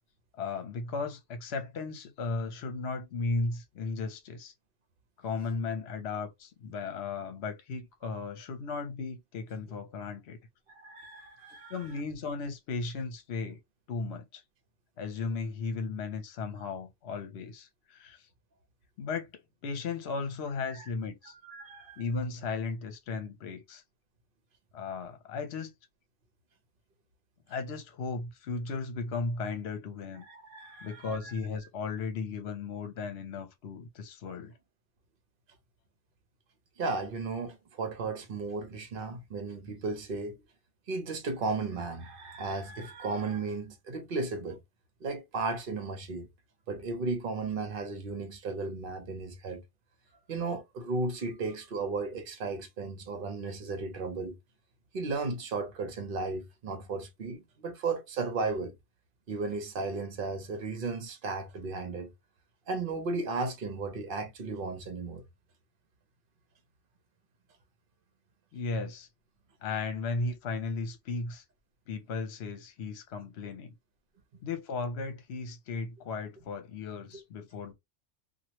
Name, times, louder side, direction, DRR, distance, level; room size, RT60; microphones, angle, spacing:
voice 1, 0.4-4.5 5.2-10.4 11.7-13.6 13.9-14.4 15.0-18.2 19.0-19.3 19.6-21.3 22.0-23.8 24.7-25.7 27.5-30.3 30.8-34.5 68.5-69.1 69.6-71.4 71.9-73.7 74.4-77.7, left 4 dB, 65° left, 0.9 m, -35 dB
voice 2, 10.7-11.9 20.7-20.9 21.2-22.0 30.3-31.3 36.8-40.4 40.9-44.6 45.0-46.3 46.7-49.6 50.3-54.4 54.9-58.7 59.3-62.1 62.7-65.2, right 3 dB, 50° right, 0.9 m, -35 dB
3.0 x 2.4 x 2.9 m
omnidirectional pair, 1.3 m